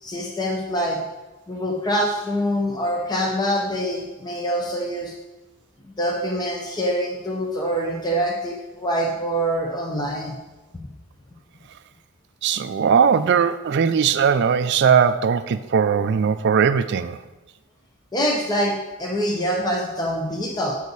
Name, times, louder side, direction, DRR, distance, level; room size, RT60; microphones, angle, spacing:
voice 1, 0.0-1.0 1.5-5.1 5.9-10.4 18.1-20.8, equal, 20° left, -1 dB, 0.8 m, -25 dB
voice 2, 12.4-17.2, right 6 dB, 50° right, 12 dB, 0.3 m, -19 dB
8.1 x 6.5 x 4.0 m, 1.1 s
head